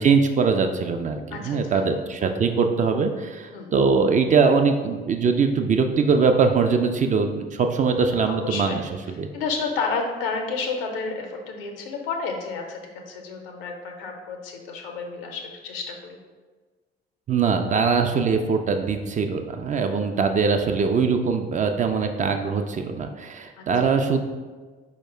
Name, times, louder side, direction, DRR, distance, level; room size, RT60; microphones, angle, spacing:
voice 1, 0.0-8.8 9.1-9.3 17.3-24.2, right 5 dB, 25° right, 5 dB, 0.3 m, -22 dB
voice 2, 1.3-1.8 3.5-3.7 8.3-8.9 9.3-12.8 13.1-16.2 19.9-20.2 23.6-23.7, left 4 dB, 75° left, 4 dB, 0.6 m, -31 dB
4.6 x 2.1 x 4.4 m, 1.4 s
figure-of-eight pair, 50°, 29 cm